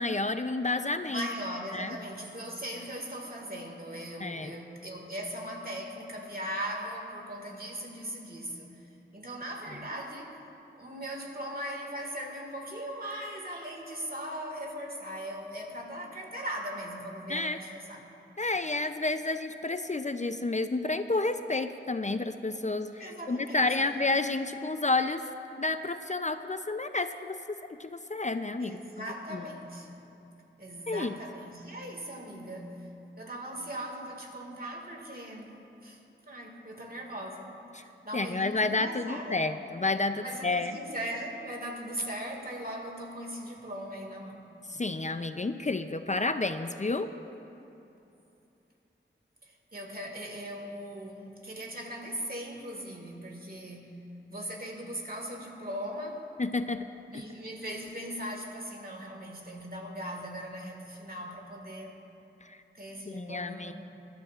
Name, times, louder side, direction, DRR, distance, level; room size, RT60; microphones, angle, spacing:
voice 1, 0.0-1.3 1.7-2.0 4.2-4.5 17.3-17.6 18.4-25.2 25.6-27.4 27.8-28.8 29.3-29.4 30.9-31.1 37.8-37.9 38.1-40.7 44.7-47.1 56.4-56.8 57.1-57.2 62.4-62.5 63.1-63.7, left 3 dB, 35° left, 9 dB, 0.5 m, -30 dB
voice 2, 1.1-10.4 10.8-18.0 23.0-23.9 28.6-29.9 30.6-32.9 33.2-35.6 35.8-36.0 36.3-39.5 40.2-44.4 49.4-56.3 57.1-62.0 62.7-63.7, equal, 50° right, 0 dB, 1.9 m, -39 dB
20.5 x 12.5 x 2.4 m, 2.9 s
wide cardioid pair, 40°, 20 cm